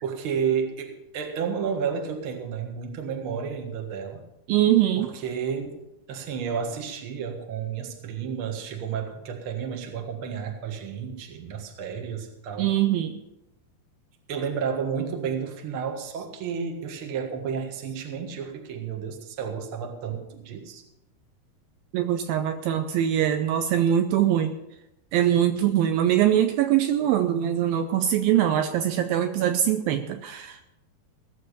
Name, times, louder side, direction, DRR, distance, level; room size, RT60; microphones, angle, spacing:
voice 1, 0.0-4.2 5.0-5.8 6.1-12.7 14.3-20.8, right 7 dB, 50° right, 3 dB, 1.7 m, -31 dB
voice 2, 4.5-5.1 12.6-13.2 21.9-24.5 25.1-30.6, right 11 dB, 80° right, 8 dB, 2.3 m, -22 dB
17.0 x 7.2 x 6.8 m, 0.88 s
omnidirectional pair, 4.6 m